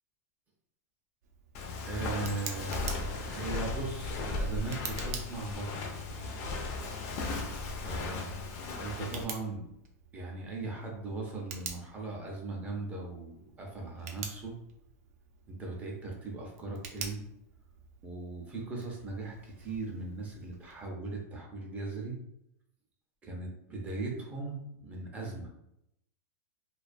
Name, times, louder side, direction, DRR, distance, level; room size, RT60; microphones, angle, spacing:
Tick, 1.2-20.9, right 6 dB, 65° right, 0.5 m, -48 dB
Walk footsteps, 1.5-9.2, left 3 dB, 40° left, 0.4 m, -36 dB
voice 1, 1.8-6.0 7.8-8.4 8.7-9.7 10.1-14.6 15.5-17.2 18.0-22.2 23.2-25.5, right 3 dB, 15° right, -1 dB, 0.5 m, -39 dB
2.3 x 2.2 x 2.5 m, 0.80 s
supercardioid pair, 145°, 9 cm